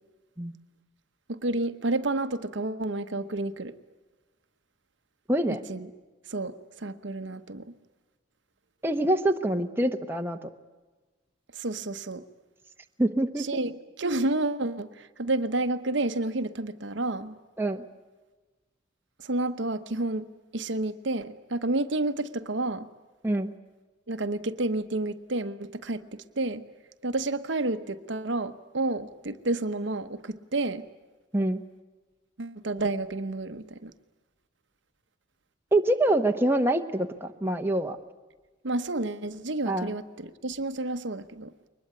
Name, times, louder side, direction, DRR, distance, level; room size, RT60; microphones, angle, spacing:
voice 1, 1.3-3.7 5.5-5.9 6.3-7.7 11.5-12.2 13.4-17.4 19.2-20.3 20.5-22.9 24.1-26.6 27.0-30.9 32.4-33.9 38.6-41.5, right 2 dB, 65° right, 1.0 m, -30 dB
voice 2, 5.3-5.6 8.8-10.5 13.0-13.6 17.6-17.8 23.2-23.5 31.3-31.6 35.7-38.0 39.7-39.9, right 1 dB, 10° right, 1.1 m, -25 dB
23.0 x 20.5 x 9.5 m
head